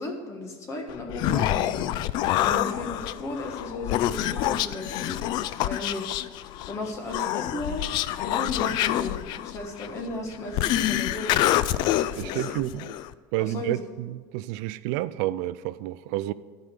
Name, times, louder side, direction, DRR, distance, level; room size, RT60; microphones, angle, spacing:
voice 1, 0.0-2.0 2.3-5.2 5.6-6.2 6.7-7.8 8.2-11.4 12.1-12.6 13.4-13.8, left 2 dB, 30° left, 1.4 m, -35 dB
Human voice, 0.9-13.1, left 13 dB, 55° left, 0.4 m, -27 dB
voice 2, 12.2-12.9 13.3-16.3, right 15 dB, 75° right, 0.4 m, -30 dB
11.0 x 5.1 x 8.2 m
cardioid pair, 145°, 9 cm